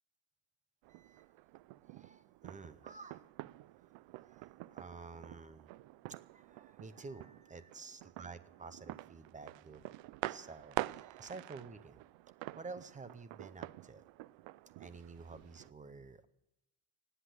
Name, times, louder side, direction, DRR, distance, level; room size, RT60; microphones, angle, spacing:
sound 1, 0.8-15.7, right 18 dB, 90° right, 0.5 m, -47 dB
voice 1, 0.9-1.2 1.8-3.2 4.2-5.7 6.1-9.8 10.3-12.0 12.6-14.1 14.8-16.3, right 4 dB, 20° right, 13 dB, 0.5 m, -51 dB
19.0 x 8.1 x 7.8 m, 0.88 s
cardioid pair, 170°, 44 cm